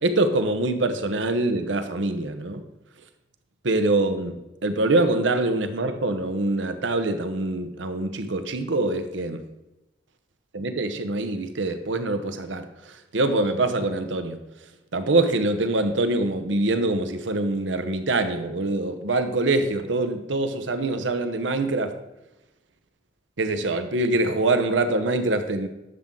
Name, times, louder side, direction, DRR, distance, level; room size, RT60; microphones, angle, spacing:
voice 1, 0.0-2.6 3.6-9.4 10.5-14.4 14.9-21.9 23.4-25.7, right 2 dB, 85° right, 8 dB, 1.0 m, -24 dB
11.5 x 7.4 x 3.8 m, 0.96 s
head